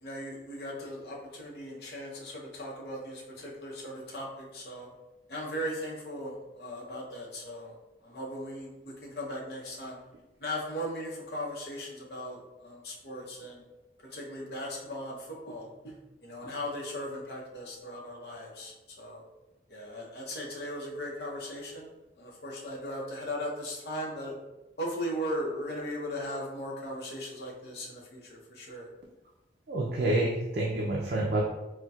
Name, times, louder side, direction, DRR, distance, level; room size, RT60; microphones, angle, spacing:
voice 1, 0.0-4.9 5.3-7.7 8.0-10.0 10.4-13.6 14.1-15.9 16.2-19.2 19.7-21.9 22.2-24.3 24.8-28.9, equal, 65° left, -3 dB, 0.7 m, -38 dB
voice 2, 29.7-31.4, right 1 dB, 55° right, -3 dB, 0.4 m, -28 dB
4.1 x 2.1 x 2.3 m, 1.0 s
head